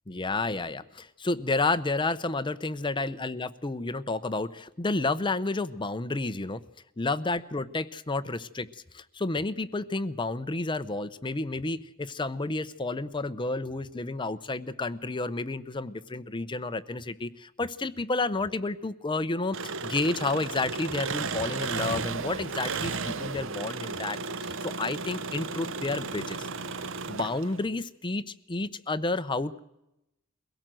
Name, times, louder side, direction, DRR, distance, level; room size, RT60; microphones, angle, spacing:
voice 1, 0.1-6.6 7.0-24.2 24.6-26.5 27.1-29.6, left 3 dB, 25° left, 12 dB, 0.7 m, -31 dB
Engine, 19.5-27.7, right 4 dB, 65° right, 0.9 m, -34 dB
23.0 x 17.0 x 7.6 m, 0.87 s
head